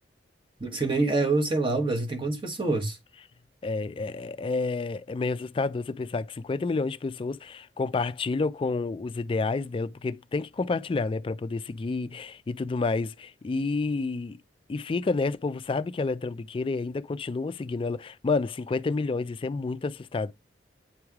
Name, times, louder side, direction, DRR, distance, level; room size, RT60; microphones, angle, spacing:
voice 1, 0.6-3.0, right 3 dB, 30° right, 1.1 m, -26 dB
voice 2, 3.6-14.4 14.7-20.3, left 3 dB, 30° left, 0.3 m, -29 dB
8.6 x 3.2 x 3.5 m
head